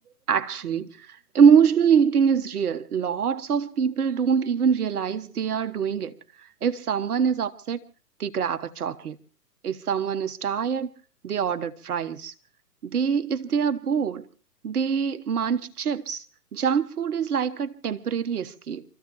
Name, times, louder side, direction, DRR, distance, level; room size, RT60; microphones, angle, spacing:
voice 1, 0.3-0.9 1.3-6.1 6.6-7.8 8.2-9.1 9.6-10.9 11.2-12.3 12.9-14.3 14.6-16.2 16.5-18.8, right 7 dB, 70° right, 1.3 m, -24 dB
27.5 x 14.0 x 3.1 m
hypercardioid pair, 125°, 47 cm